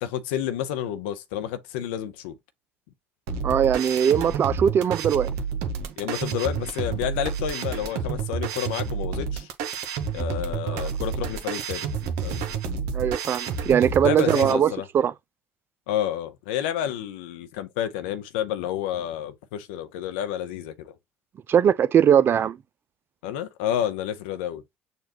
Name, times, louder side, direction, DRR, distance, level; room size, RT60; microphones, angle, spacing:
voice 1, 0.0-2.4 6.0-9.5 10.1-11.9 12.2-12.4 14.0-14.9 15.9-20.9 23.2-24.6, left 10 dB, 70° left, 0.6 m, -30 dB
sound 1, 3.3-14.5, right 6 dB, 65° right, 0.8 m, -30 dB
voice 2, 3.4-5.3 10.7-10.9 12.9-15.1 21.5-22.6, right 8 dB, 40° right, 0.4 m, -20 dB
6.7 x 2.4 x 2.9 m
hypercardioid pair, 60°, 6 cm